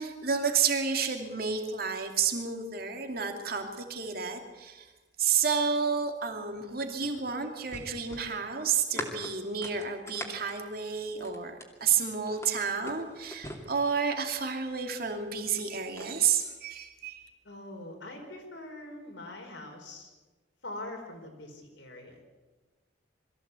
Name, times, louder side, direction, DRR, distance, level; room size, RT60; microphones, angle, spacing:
voice 1, 0.0-4.9 5.2-17.3, right 6 dB, 50° right, 4 dB, 2.6 m, -30 dB
sound 1, 6.6-11.8 12.3-14.4 15.3-16.1, left 1 dB, 15° left, 2.6 m, -43 dB
voice 2, 17.4-20.1 20.6-22.2, left 1 dB, 75° left, 2 dB, 5.0 m, -43 dB
22.5 x 15.0 x 8.4 m, 1.2 s
head